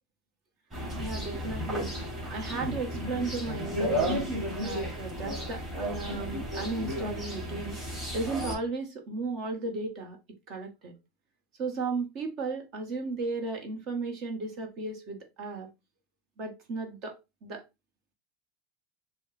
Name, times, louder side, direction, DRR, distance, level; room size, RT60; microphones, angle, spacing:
sound 1, 0.7-8.6, equal, 20° right, 3.0 m, -33 dB
voice 1, 1.0-2.0 2.3-7.8 8.1-10.2 10.5-10.9 11.6-15.7 16.4-17.6, right 3 dB, 45° right, 1.4 m, -35 dB
6.2 x 2.3 x 3.3 m
supercardioid pair, 135°, 0 cm